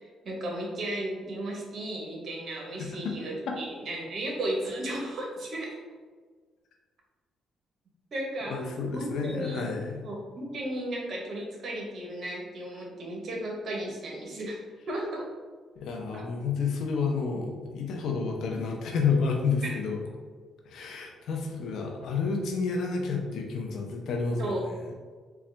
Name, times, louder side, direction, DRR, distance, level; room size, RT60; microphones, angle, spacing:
voice 1, 0.0-5.8 8.1-8.6 8.9-9.7 10.0-14.6 14.9-15.3 16.1-16.2 19.6-19.8 24.4-24.6, right 1 dB, 55° right, -1 dB, 1.0 m, -34 dB
voice 2, 8.5-10.0 15.8-20.0 20.7-24.7, left 5 dB, 75° left, 2 dB, 0.6 m, -30 dB
3.9 x 2.4 x 3.3 m, 1.5 s
cardioid pair, 90°, 0 cm